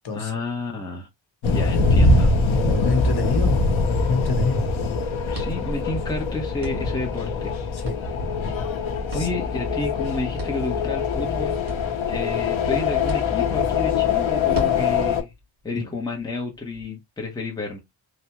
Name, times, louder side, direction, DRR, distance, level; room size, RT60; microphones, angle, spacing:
voice 1, 0.1-1.1 1.5-2.3 5.3-7.5 9.1-11.6 12.1-15.3 15.6-17.8, left 3 dB, 10° left, 0.7 m, -30 dB
sound 1, 1.4-15.2, left 3 dB, 80° left, 0.7 m, -23 dB
voice 2, 2.5-3.6 4.1-4.6 7.7-7.9 9.1-9.3 15.8-15.9, left 4 dB, 55° left, 1.0 m, -26 dB
sound 2, 5.3-16.8, equal, 60° right, 1.8 m, -41 dB
3.4 x 2.0 x 2.8 m
wide cardioid pair, 150°, 47 cm